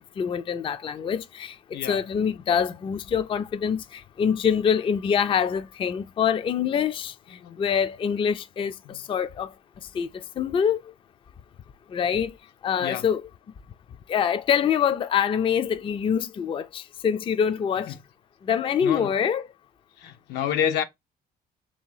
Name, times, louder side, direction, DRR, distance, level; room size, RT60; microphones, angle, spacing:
voice 1, 0.0-9.5 9.9-10.8 11.9-12.3 12.6-13.2 14.1-18.0 18.4-19.5, left 7 dB, 30° left, 0.4 m, -25 dB
voice 2, 20.0-20.8, left 9 dB, 80° left, 0.8 m, -28 dB
3.3 x 2.8 x 4.6 m
cardioid pair, 110°, 17 cm